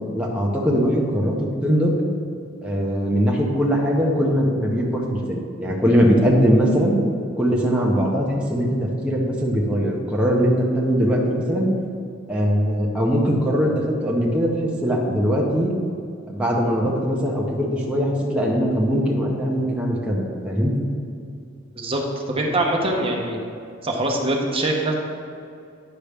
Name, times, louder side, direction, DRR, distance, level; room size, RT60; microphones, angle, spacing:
voice 1, 0.1-1.3 1.6-1.9 2.6-7.0 7.4-8.7 9.0-11.7 12.3-13.7 14.0-14.5 14.8-15.7 16.3-20.8, equal, 5° right, -4 dB, 0.8 m, -21 dB
voice 2, 21.8-23.4 23.8-24.9, right 1 dB, 30° right, 0 dB, 0.9 m, -23 dB
10.0 x 5.3 x 3.5 m, 2.4 s
head